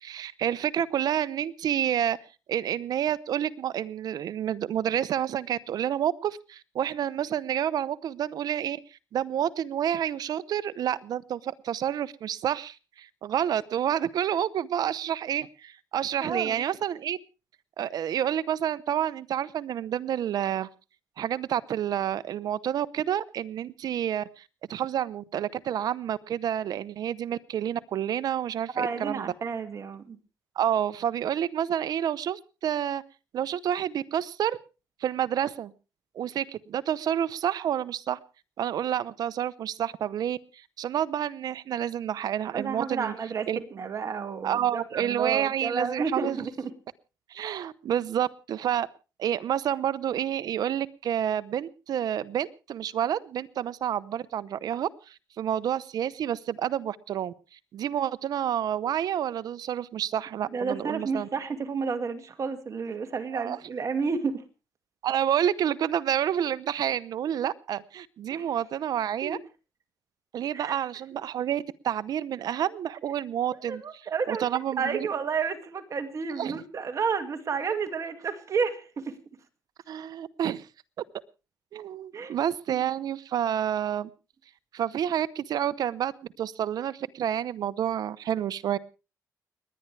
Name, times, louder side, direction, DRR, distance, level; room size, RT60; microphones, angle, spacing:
voice 1, 0.0-2.2 2.5-17.2 17.8-20.7 21.2-24.4 24.7-29.3 30.6-33.0 33.3-34.6 35.0-35.7 36.1-38.2 38.6-40.4 40.8-43.1 43.5-43.6 44.4-46.4 47.3-48.9 49.2-57.3 57.7-61.3 63.3-63.6 65.0-69.4 70.3-73.8 74.3-75.1 76.4-76.6 79.9-80.7 81.7-84.1 84.7-86.1 86.4-88.8, right 10 dB, 70° right, 0.8 m, -29 dB
voice 2, 16.2-16.6 28.7-30.2 42.5-46.7 60.5-64.4 68.3-68.5 69.2-69.4 70.5-70.8 73.7-74.5 74.8-79.2 82.1-82.4 82.7-82.8, right 5 dB, 50° right, 2.2 m, -31 dB
30.0 x 10.5 x 3.3 m
cardioid pair, 80°, 7 cm